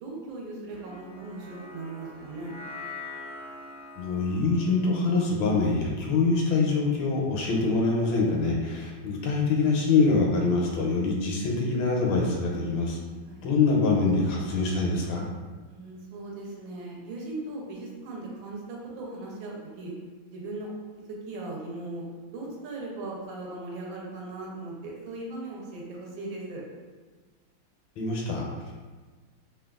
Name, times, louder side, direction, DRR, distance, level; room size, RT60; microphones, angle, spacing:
voice 1, 0.0-2.5 13.2-13.4 15.6-19.9 20.3-20.7 21.1-22.0 22.3-26.6, right 2 dB, 85° right, -2 dB, 1.4 m, -38 dB
sound 1, 0.7-7.1, left 3 dB, 60° right, 1.3 m, -45 dB
voice 2, 4.0-13.0 13.4-15.2 28.0-28.5, left 3 dB, 80° left, -1 dB, 1.3 m, -24 dB
3.3 x 2.2 x 2.3 m, 1.4 s
omnidirectional pair, 2.2 m